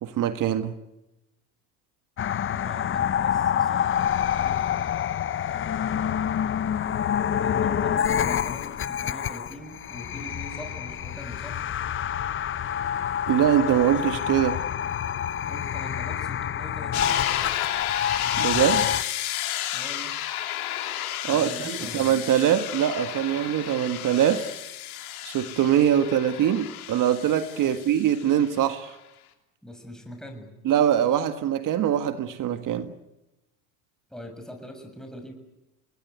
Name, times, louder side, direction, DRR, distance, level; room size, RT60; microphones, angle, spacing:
voice 1, 0.0-0.8 13.3-14.6 18.4-18.9 21.2-24.5 25.2-29.0 30.6-32.9, right 10 dB, 50° right, 1.7 m, -23 dB
sound 1, 2.2-19.0, left 9 dB, 30° left, 0.8 m, -27 dB
voice 2, 2.5-5.0 7.3-11.6 15.5-17.2 19.7-20.2 21.3-22.1 27.6-27.8 29.6-30.6 34.1-35.3, equal, ahead, 6.8 m, -42 dB
sound 2, 16.9-28.6, left 12 dB, 85° left, 3.1 m, -32 dB
28.0 x 20.5 x 8.2 m
supercardioid pair, 90°, 42 cm